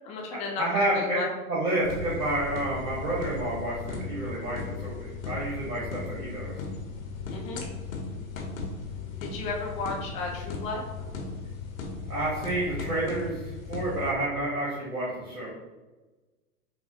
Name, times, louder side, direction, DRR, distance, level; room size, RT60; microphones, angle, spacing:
voice 1, 0.0-1.3 7.3-7.7 9.2-10.8, left 3 dB, 15° left, -1 dB, 0.4 m, -34 dB
voice 2, 0.6-1.2 1.5-6.5 12.1-13.4 13.7-15.5, right 1 dB, 75° right, -7 dB, 1.1 m, -29 dB
sound 1, 1.8-14.1, left 4 dB, 65° left, 0.7 m, -37 dB
5.3 x 2.1 x 2.7 m, 1.2 s
figure-of-eight pair, 90°, 44 cm